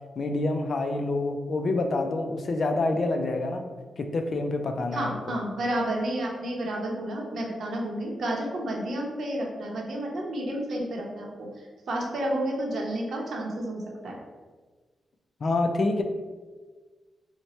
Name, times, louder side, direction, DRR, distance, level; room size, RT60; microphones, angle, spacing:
voice 1, 0.2-3.7 4.0-5.2 15.4-16.0, left 2 dB, 55° left, 6 dB, 0.4 m, -27 dB
voice 2, 4.9-14.2, right 1 dB, 75° right, -1 dB, 0.7 m, -31 dB
3.0 x 2.1 x 4.0 m, 1.4 s
cardioid pair, 80°, 0 cm